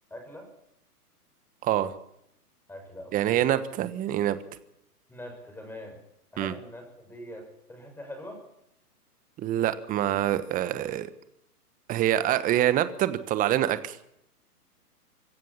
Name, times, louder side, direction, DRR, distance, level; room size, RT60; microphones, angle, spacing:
voice 1, 0.1-0.5 2.7-3.5 5.1-6.0 6.3-8.4, left 1 dB, 5° left, 3 dB, 6.5 m, -43 dB
voice 2, 1.6-1.9 3.1-4.4 6.4-6.5 9.4-11.1 11.9-14.0, right 12 dB, 20° right, 13 dB, 1.2 m, -25 dB
25.0 x 14.5 x 7.2 m, 0.79 s
hypercardioid pair, 125°, 46 cm